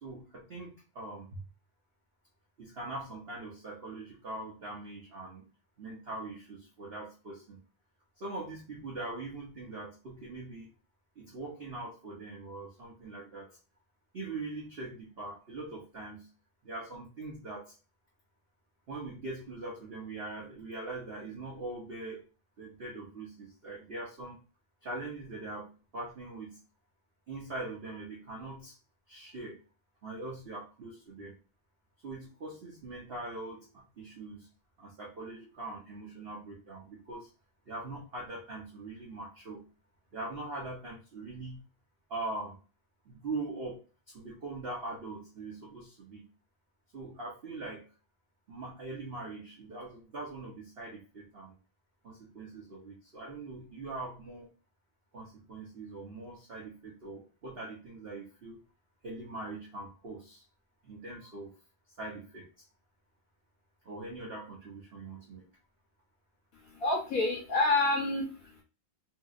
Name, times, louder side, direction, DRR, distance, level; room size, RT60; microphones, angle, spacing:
voice 1, 0.0-1.4 2.6-5.5 5.8-7.6 8.2-10.7 11.2-13.6 14.1-16.3 16.6-17.7 18.9-22.3 22.6-24.4 24.8-26.6 27.3-28.8 29.1-29.6 30.0-31.4 32.0-34.5 34.8-37.3 37.7-39.7 40.1-41.6 42.1-42.6 43.1-46.3 46.9-47.9 48.5-51.5 52.0-54.5 55.1-58.6 59.0-60.4 60.8-61.5 62.0-62.5 63.8-65.5, right 2 dB, 65° right, -3 dB, 0.6 m, -42 dB
voice 2, 66.5-68.6, left 2 dB, 55° left, -1 dB, 1.1 m, -29 dB
3.0 x 2.8 x 2.3 m, 0.33 s
omnidirectional pair, 2.1 m